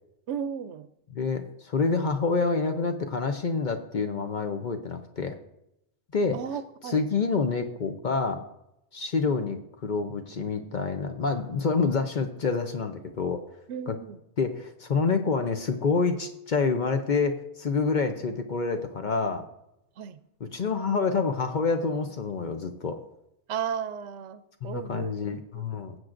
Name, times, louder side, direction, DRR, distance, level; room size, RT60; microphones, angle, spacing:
voice 1, 0.3-0.9 6.3-7.0 13.7-14.2 20.0-20.2 23.5-25.4, right 8 dB, 75° right, 12 dB, 0.9 m, -34 dB
voice 2, 1.1-5.4 6.1-6.4 6.8-8.4 8.9-13.4 13.9-14.0 14.4-19.4 20.4-23.0 24.6-26.0, left 4 dB, 50° left, 6 dB, 0.7 m, -27 dB
19.0 x 7.6 x 2.5 m, 0.84 s
omnidirectional pair, 1.2 m